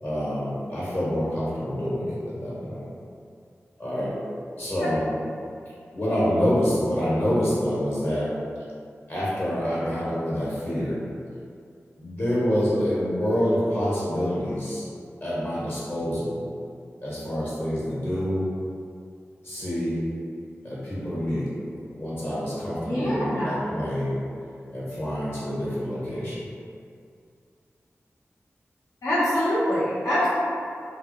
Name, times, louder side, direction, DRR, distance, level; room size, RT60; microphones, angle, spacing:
voice 1, 0.0-2.9 3.8-4.1 4.6-5.1 5.9-8.3 9.1-11.0 12.0-14.9 15.2-16.4 17.0-18.5 19.4-20.0 20.6-21.5 21.9-24.2 24.7-26.5, equal, 45° left, -8 dB, 1.1 m, -27 dB
voice 2, 22.8-23.6 29.0-30.3, left 1 dB, 80° left, -12 dB, 1.0 m, -24 dB
2.2 x 2.0 x 3.0 m, 2.4 s
cardioid pair, 40°, 5 cm